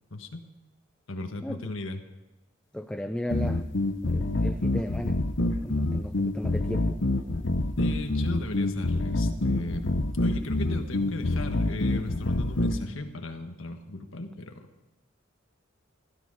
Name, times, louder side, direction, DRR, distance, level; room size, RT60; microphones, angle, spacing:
voice 1, 0.1-0.4 1.1-2.0 7.8-14.7, left 2 dB, 90° left, 5 dB, 1.5 m, -36 dB
voice 2, 2.7-3.7 4.0-5.2 5.6-7.0, left 1 dB, 5° left, 8 dB, 0.4 m, -35 dB
sound 1, 3.3-12.8, left 2 dB, 65° left, 0.9 m, -26 dB
16.5 x 12.5 x 5.0 m, 1.0 s
head